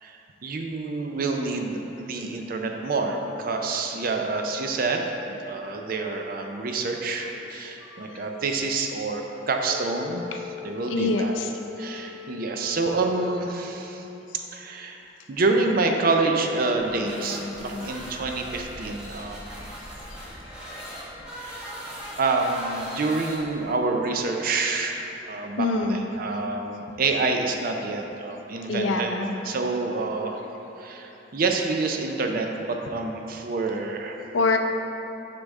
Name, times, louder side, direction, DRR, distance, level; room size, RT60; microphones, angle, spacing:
voice 1, 0.0-11.3 11.8-14.0 14.5-20.0 21.4-21.7 22.2-29.1 29.4-30.5 30.8-34.2, right 3 dB, 50° right, 3 dB, 0.4 m, -27 dB
voice 2, 7.9-8.3 10.9-11.5 22.0-22.1 25.6-26.0 28.7-29.5 34.3-34.6, left 3 dB, 85° left, 4 dB, 0.5 m, -25 dB
Wind instrument woodwind instrument, 9.6-14.0, left 8 dB, 10° left, 0.4 m, -41 dB
sound 1, 16.8-23.8, equal, 5° right, 0.9 m, -38 dB
6.6 x 5.3 x 3.6 m, 3.0 s
head